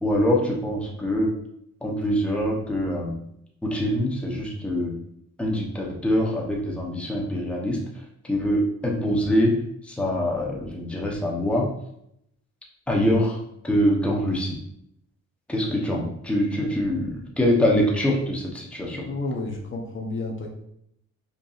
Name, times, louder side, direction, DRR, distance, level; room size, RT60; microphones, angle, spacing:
voice 1, 0.0-1.3 1.8-3.2 3.6-4.9 5.4-7.8 8.2-9.6 9.8-11.7 12.9-14.6 15.5-19.1, equal, 5° left, -2 dB, 0.8 m, -24 dB
voice 2, 18.9-20.5, left 2 dB, 40° left, 1 dB, 0.7 m, -31 dB
5.1 x 2.7 x 2.4 m, 0.75 s
cardioid pair, 90°, 30 cm